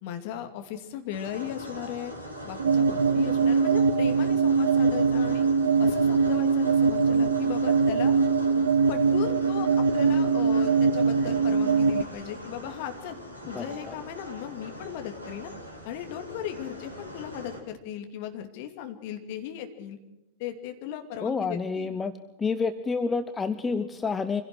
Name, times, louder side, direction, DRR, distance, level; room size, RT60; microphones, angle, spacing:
voice 1, 0.0-2.1 2.4-5.5 5.8-8.2 8.5-8.6 8.9-13.2 13.5-15.5 15.8-20.0 20.4-22.0, left 10 dB, 50° left, 6 dB, 2.7 m, -37 dB
sound 1, 1.1-17.6, equal, 90° left, 3.6 m, -41 dB
sound 2, 2.6-12.0, right 5 dB, 70° right, 0.7 m, -22 dB
voice 2, 13.5-13.9 21.2-22.1 22.4-24.4, left 4 dB, 15° left, 10 dB, 1.0 m, -29 dB
25.5 x 16.5 x 6.2 m, 0.96 s
figure-of-eight pair, 90°, 0 cm